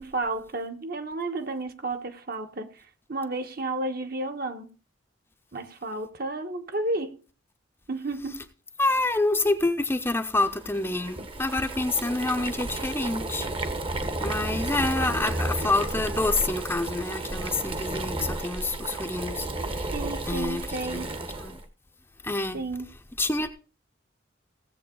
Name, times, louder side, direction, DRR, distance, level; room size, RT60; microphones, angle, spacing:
voice 1, 0.0-4.7 5.5-7.3 7.9-8.5 19.9-21.1 22.5-22.9, right 2 dB, 50° right, 1.3 m, -32 dB
voice 2, 8.8-13.5 14.2-19.9 20.3-20.6 20.9-21.1 21.4-21.6 22.2-22.6 23.2-23.5, left 2 dB, 10° left, 0.8 m, -27 dB
Boiling, 10.4-21.6, right 2 dB, 25° right, 1.0 m, -32 dB
16.5 x 7.8 x 3.9 m
head